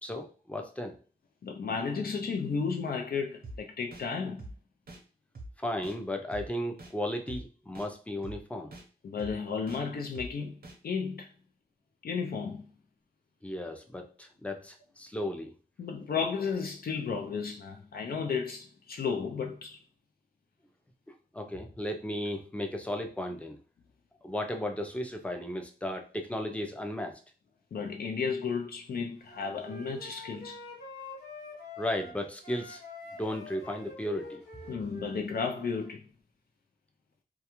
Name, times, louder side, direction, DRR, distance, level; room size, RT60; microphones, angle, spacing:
voice 1, 0.0-1.0 5.6-8.7 13.4-15.5 21.3-23.6 24.2-27.2 31.8-32.8 33.2-34.7, left 1 dB, 10° left, 0.4 m, -35 dB
voice 2, 1.4-4.4 9.0-10.6 10.8-11.3 12.0-12.6 15.8-19.8 27.7-30.6 34.7-36.0, left 5 dB, 70° left, 0.4 m, -33 dB
sound 1, 3.4-3.6 3.9-4.0 4.4-4.5 4.9-5.0 5.4-5.5 5.8-6.0 6.3-6.4 6.8-6.9 7.3-7.4 7.8-7.9 8.2-8.4 8.7-8.8 9.2-9.3 9.7-9.8 10.2-10.3 10.6-10.8, right 1 dB, 70° right, 0.6 m, -44 dB
Wind instrument woodwind instrument, 29.3-32.2 32.4-35.9, left 2 dB, 90° left, 0.9 m, -46 dB
2.3 x 2.3 x 2.9 m
wide cardioid pair, 110°, 16 cm